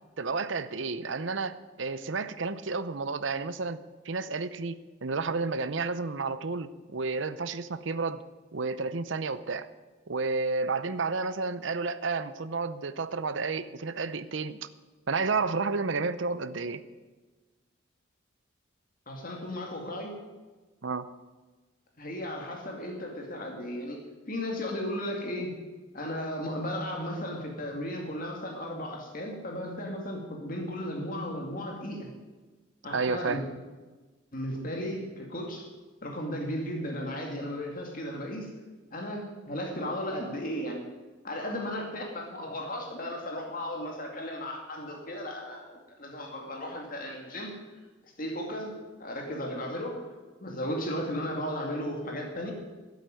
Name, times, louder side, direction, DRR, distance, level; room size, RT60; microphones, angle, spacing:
voice 1, 0.2-8.2 8.5-9.7 10.1-14.7 15.1-16.8 20.8-21.1 32.9-33.4, right 4 dB, 65° right, 14 dB, 0.7 m, -31 dB
voice 2, 19.1-20.2 22.0-24.0 24.3-25.6 25.9-32.1 32.8-33.4 34.3-35.7 36.0-38.5 38.9-40.9 41.2-47.6 48.0-50.1 50.4-52.5, equal, 45° left, 1 dB, 2.3 m, -35 dB
12.5 x 8.2 x 9.3 m, 1.3 s
head